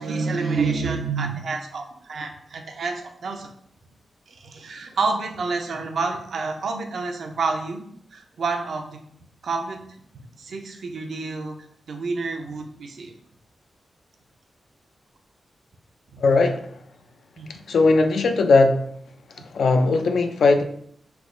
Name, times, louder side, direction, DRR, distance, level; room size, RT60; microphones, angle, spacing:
voice 1, 0.0-3.5 4.3-9.0 9.4-9.8 10.4-11.6 11.9-13.1 16.1-16.2 17.4-17.5, right 4 dB, 70° right, 4 dB, 0.5 m, -28 dB
voice 2, 16.2-16.7 17.7-18.8 19.5-20.6, left 3 dB, 80° left, 6 dB, 0.3 m, -18 dB
3.3 x 2.0 x 3.6 m, 0.67 s
cardioid pair, 60°, 0 cm